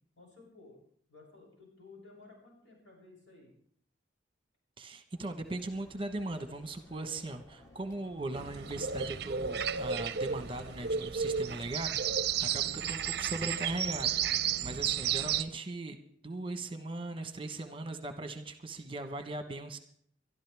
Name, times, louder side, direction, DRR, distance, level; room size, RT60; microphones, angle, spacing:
voice 1, 0.2-0.8 1.1-3.5 12.4-12.7, left 3 dB, 75° left, -2 dB, 7.5 m, -56 dB
voice 2, 4.8-12.0 12.4-16.0 16.2-19.8, right 2 dB, 30° right, 8 dB, 1.1 m, -39 dB
sound 1, 5.1-10.8, left 1 dB, 15° left, 1.4 m, -57 dB
sound 2, 8.3-15.4, right 8 dB, 55° right, 0.6 m, -33 dB
23.0 x 12.5 x 3.5 m, 0.63 s
head